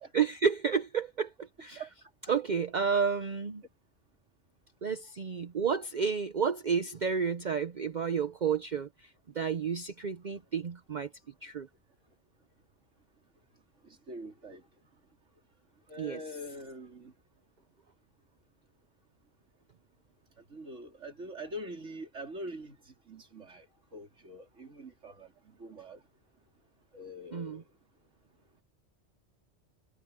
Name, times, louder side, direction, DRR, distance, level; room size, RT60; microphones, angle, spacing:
voice 1, 0.1-1.8 2.3-3.6 4.8-11.1 11.4-11.7 16.0-16.2 27.3-27.6, right 6 dB, 45° right, 0.8 m, -31 dB
voice 2, 13.8-14.6 15.9-17.1 20.5-23.7 23.9-26.0 26.9-27.6, equal, 85° right, 4.0 m, -44 dB
omnidirectional pair, 1.2 m